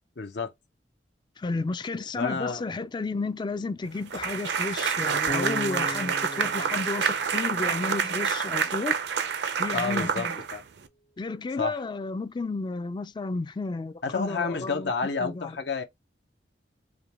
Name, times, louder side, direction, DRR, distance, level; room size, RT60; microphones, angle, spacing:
voice 1, 0.2-0.5 2.2-2.9 9.7-10.6 11.6-11.8 14.0-15.8, left 4 dB, 70° left, 0.7 m, -30 dB
voice 2, 1.4-9.0 9.6-10.3 11.2-14.9 15.2-15.6, left 3 dB, 25° left, 0.3 m, -32 dB
sound 1, 4.1-10.9, right 6 dB, 70° right, 0.5 m, -28 dB
Bass guitar, 5.3-8.3, equal, 90° left, 1.7 m, -38 dB
5.0 x 2.2 x 2.9 m
head